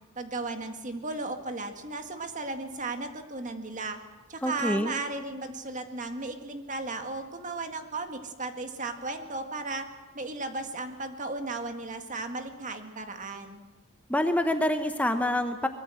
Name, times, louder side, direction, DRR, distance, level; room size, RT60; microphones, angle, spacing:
voice 1, 0.2-4.0 4.3-9.9 10.1-13.6, right 3 dB, 35° right, 6 dB, 2.0 m, -35 dB
voice 2, 4.4-4.9 14.1-15.7, left 1 dB, 5° left, 6 dB, 1.0 m, -26 dB
23.5 x 21.5 x 7.8 m, 1.2 s
head